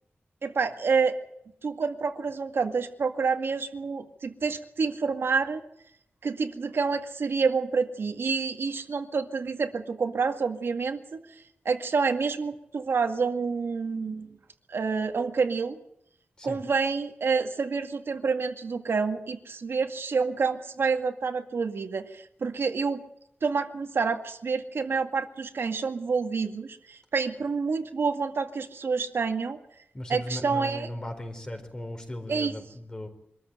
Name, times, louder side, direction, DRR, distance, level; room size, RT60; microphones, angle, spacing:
voice 1, 0.4-1.2 1.6-5.6 6.2-11.2 11.7-14.4 14.7-15.8 16.4-23.0 23.4-29.6 30.1-30.9 32.3-32.5, right 5 dB, 70° right, 5 dB, 2.0 m, -28 dB
voice 2, 29.9-33.1, left 1 dB, 20° left, 5 dB, 4.2 m, -37 dB
25.0 x 14.0 x 9.0 m, 0.75 s
wide cardioid pair, 155°, 4 cm